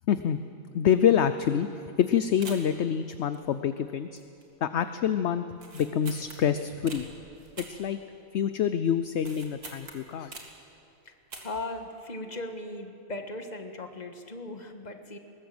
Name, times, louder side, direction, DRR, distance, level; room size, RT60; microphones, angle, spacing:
voice 1, 0.1-0.4 0.7-4.2 4.6-5.4 5.7-7.1 7.7-8.0 8.3-10.4, left 8 dB, 60° left, 11 dB, 0.8 m, -26 dB
sound 1, 1.7-1.8 2.0-2.1 2.4-2.8 3.3-3.8 4.1-4.5 4.8-4.9 5.5-7.0 7.6-8.5 8.8-10.7 11.2-11.7 12.0-12.1, right 3 dB, 75° right, 2.8 m, -45 dB
sound 2, 6.9-8.4 8.8-8.9, right 1 dB, 40° right, 3.1 m, -55 dB
voice 2, 11.0-15.2, left 2 dB, 30° left, 6 dB, 1.5 m, -38 dB
21.0 x 19.5 x 7.8 m, 2.8 s
omnidirectional pair, 1.6 m